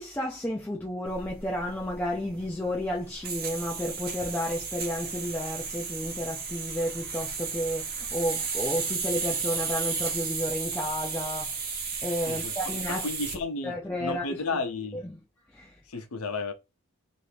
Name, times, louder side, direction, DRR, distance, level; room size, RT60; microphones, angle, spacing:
voice 1, 0.0-11.7 12.0-13.1 13.6-14.6 14.9-15.2 15.5-15.8, equal, 10° left, 0.3 m, -32 dB
sound 1, 1.1-13.4, right 5 dB, 45° right, 0.8 m, -34 dB
voice 2, 12.9-15.0 15.9-16.5, left 3 dB, 80° left, 0.7 m, -33 dB
2.8 x 2.6 x 3.3 m
head